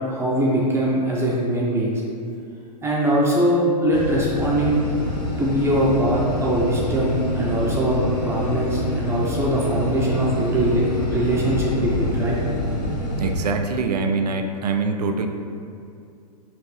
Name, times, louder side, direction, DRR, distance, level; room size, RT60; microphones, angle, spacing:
voice 1, 0.0-2.0 2.8-4.8 5.4-8.0 8.2-12.4, right 1 dB, 10° right, -5 dB, 0.6 m, -22 dB
sound 1, 3.9-13.3, left 1 dB, 75° left, 1.0 m, -26 dB
voice 2, 13.2-15.3, right 4 dB, 75° right, 5 dB, 0.5 m, -24 dB
5.8 x 2.6 x 3.2 m, 2.5 s
figure-of-eight pair, 110°, 21 cm